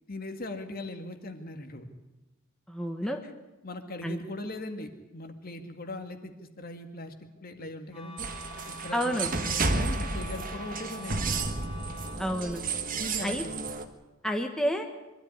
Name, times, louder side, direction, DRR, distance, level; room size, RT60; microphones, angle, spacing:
voice 1, 0.1-1.9 3.6-7.1 7.4-8.3 8.7-11.5 12.9-13.5, left 2 dB, 45° left, 6 dB, 2.0 m, -40 dB
voice 2, 2.7-3.2 4.0-4.2 8.9-9.3 12.2-12.6 13.2-13.4 14.2-14.8, equal, 5° left, 3 dB, 1.4 m, -29 dB
Wind instrument woodwind instrument, 7.9-12.3, left 1 dB, 25° left, 3.8 m, -44 dB
sound 1, 8.2-13.8, right 3 dB, 40° right, 1.5 m, -32 dB
23.5 x 13.0 x 9.8 m, 1.0 s
head